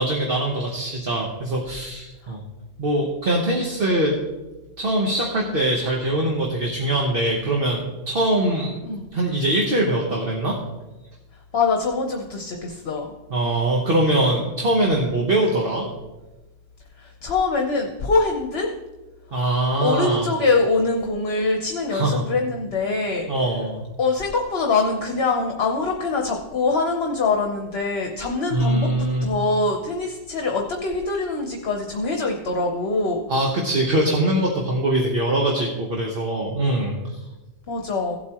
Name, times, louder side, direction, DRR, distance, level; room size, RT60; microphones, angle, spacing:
voice 1, 0.0-2.4 2.8-4.2 4.8-8.8 9.1-10.6 13.3-15.9 19.3-20.3 21.9-22.3 23.3-23.8 28.5-29.2 33.3-37.2, right 1 dB, 50° right, 0 dB, 1.3 m, -22 dB
voice 2, 11.5-13.1 17.0-18.7 19.8-23.3 24.0-28.9 29.2-33.2 37.7-38.2, left 3 dB, 60° left, 2 dB, 1.1 m, -23 dB
16.0 x 8.2 x 3.0 m, 1.1 s
omnidirectional pair, 1.2 m